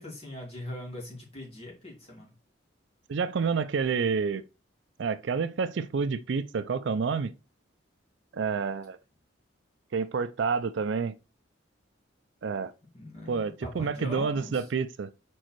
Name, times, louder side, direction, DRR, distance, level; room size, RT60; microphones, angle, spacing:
voice 1, 0.0-2.3 12.9-14.6, left 1 dB, 30° left, 2.9 m, -41 dB
voice 2, 3.1-4.4 5.0-7.3 8.3-9.0 9.9-11.2 12.4-12.7 13.3-15.3, right 5 dB, 65° right, 0.4 m, -29 dB
5.2 x 4.5 x 4.5 m
head